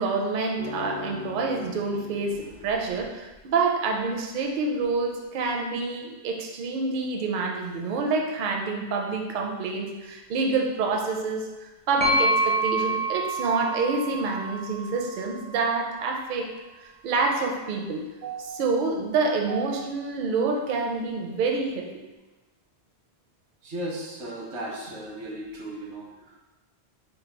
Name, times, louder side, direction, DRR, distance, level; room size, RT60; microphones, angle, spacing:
voice 1, 0.0-16.5 16.8-21.9, right 4 dB, 60° right, 1 dB, 0.6 m, -27 dB
sound 1, 0.6-3.4 4.8-4.9, left 5 dB, 55° left, 0.7 m, -39 dB
sound 2, 12.0-15.8, right 1 dB, 15° left, 0.4 m, -27 dB
voice 2, 23.6-26.4, right 1 dB, 85° right, -2 dB, 1.1 m, -36 dB
3.3 x 2.3 x 4.3 m, 1.2 s
omnidirectional pair, 1.1 m